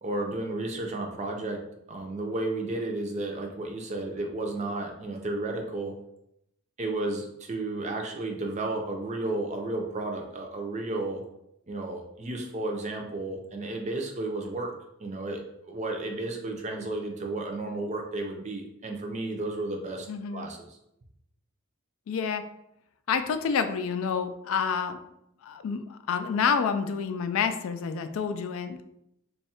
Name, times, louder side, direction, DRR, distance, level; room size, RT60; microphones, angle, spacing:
voice 1, 0.0-1.6 1.9-5.9 6.8-11.2 11.7-14.7 15.0-20.1 20.3-20.8, right 2 dB, 30° right, 2 dB, 0.5 m, -33 dB
voice 2, 20.1-20.5 22.1-22.4 23.1-25.0 25.4-28.8, left 6 dB, 70° left, 9 dB, 0.3 m, -28 dB
3.1 x 2.3 x 4.2 m, 0.80 s
head